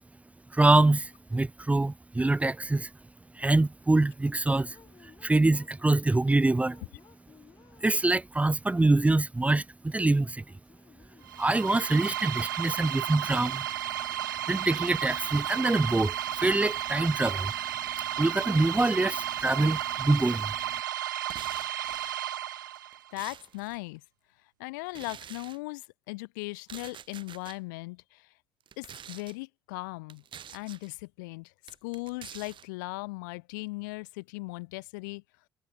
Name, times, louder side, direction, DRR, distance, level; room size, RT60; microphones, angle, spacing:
voice 1, 0.5-2.9 3.4-4.8 5.0-6.8 7.8-10.4 11.4-13.7 14.5-17.5 18.2-20.5, right 2 dB, 15° right, 0.6 m, -25 dB
sound 1, 4.7-6.1 6.5-8.4 9.8-9.9 10.4-11.5 12.8-13.8 14.1-15.4 15.9-16.7 17.1-18.0 18.4-20.2, left 7 dB, 45° left, 3.4 m, -60 dB
sound 2, 11.2-23.1, right 12 dB, 85° right, 0.6 m, -33 dB
sound 3, 21.2-22.2 22.8-23.8 24.9-25.6 26.5-27.6 28.6-29.4 30.1-30.9 31.7-32.7, right 9 dB, 55° right, 5.2 m, -47 dB
voice 2, 23.1-24.0 24.6-28.3 28.8-30.2 30.5-31.5 31.8-35.2, left 26 dB, 80° left, 0.7 m, -38 dB
hypercardioid pair, 50°, 10 cm